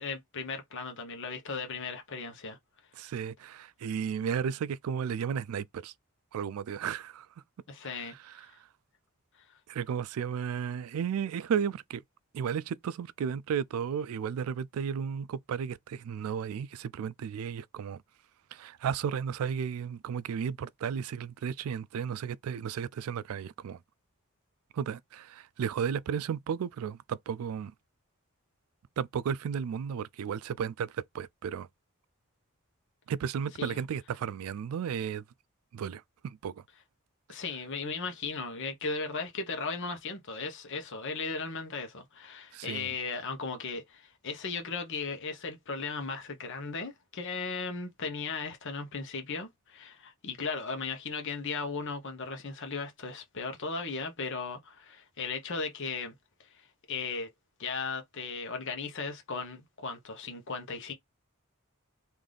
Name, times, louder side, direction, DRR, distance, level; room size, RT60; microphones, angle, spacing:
voice 1, 0.0-2.6 7.7-8.6 9.4-9.5 33.6-33.8 37.3-56.1 56.4-57.3 57.6-60.9, left 4 dB, 60° left, 0.9 m, -37 dB
voice 2, 3.0-5.9 6.3-7.3 8.3-8.5 9.7-12.0 12.3-18.0 18.5-23.8 24.7-27.7 29.0-31.7 33.1-35.2 35.7-36.6 42.5-42.9, right 7 dB, 80° right, 0.3 m, -34 dB
3.8 x 2.6 x 3.3 m
head